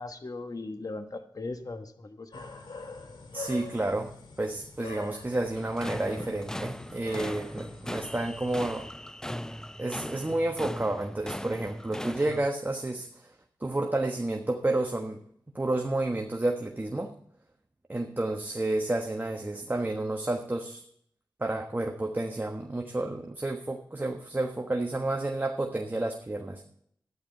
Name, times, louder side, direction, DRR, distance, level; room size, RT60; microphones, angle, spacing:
voice 1, 0.0-2.4, left 3 dB, 45° left, 8 dB, 1.3 m, -38 dB
sound 1, 2.3-8.8, left 3 dB, 75° left, 2.1 m, -45 dB
voice 2, 3.3-4.1 4.4-8.9 9.8-13.3 13.6-15.2 15.5-17.1 17.9-20.8 21.4-26.6, right 2 dB, 25° right, 3 dB, 1.3 m, -30 dB
sound 2, 5.5-12.5, left 1 dB, 5° left, 0.5 m, -39 dB
12.0 x 10.0 x 4.3 m, 0.67 s
cardioid pair, 50°, 8 cm